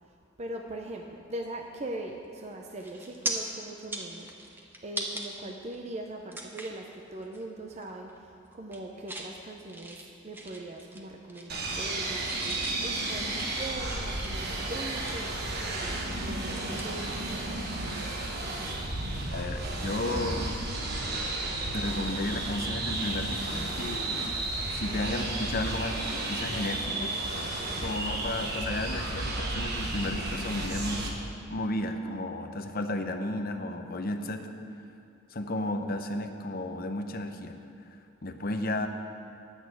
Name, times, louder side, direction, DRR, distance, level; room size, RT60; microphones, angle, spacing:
voice 1, 0.4-10.0 10.2-17.3, right 1 dB, 35° right, 2 dB, 0.6 m, -41 dB
sound 1, 2.2-2.5 2.8-3.3 3.8-5.3 5.7-5.8 6.3-6.8 7.2-7.4 7.7-8.2 8.5-9.3 9.7-11.0 11.3-12.0 12.3-15.4 15.9-17.7 18.0-18.2 20.1-20.2, right 2 dB, 10° right, 0.9 m, -40 dB
sound 2, 11.5-31.1, right 2 dB, 55° right, 1.3 m, -33 dB
voice 2, 19.3-20.5 21.7-24.3 24.7-26.0 26.3-27.2 27.8-34.5 35.3-37.6 38.2-38.9, left 1 dB, 50° left, 6 dB, 0.7 m, -33 dB
sound 3, 20.0-23.2, equal, 85° right, 1.8 m, -42 dB
10.5 x 6.3 x 7.6 m, 2.5 s
head